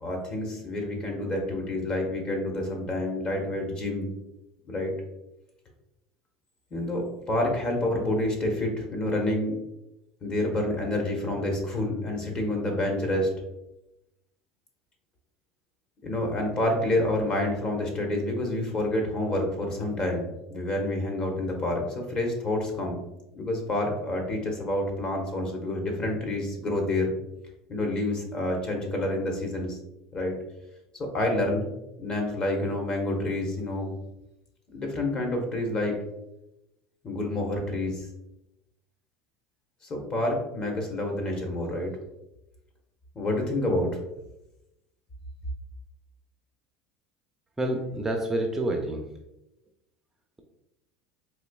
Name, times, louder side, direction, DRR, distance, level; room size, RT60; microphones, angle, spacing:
voice 1, 0.0-4.1 4.7-4.9 6.7-9.6 10.2-13.3 16.0-23.0 23.4-27.1 27.7-29.8 30.1-30.3 31.0-31.7 32.0-33.9 34.7-36.0 37.0-38.1 39.9-41.9 43.1-44.0, left 1 dB, 35° left, 1 dB, 1.0 m, -28 dB
voice 2, 47.6-49.0, right 1 dB, 15° right, 2 dB, 0.4 m, -28 dB
4.1 x 2.7 x 2.2 m, 0.91 s
supercardioid pair, 105°, 3 cm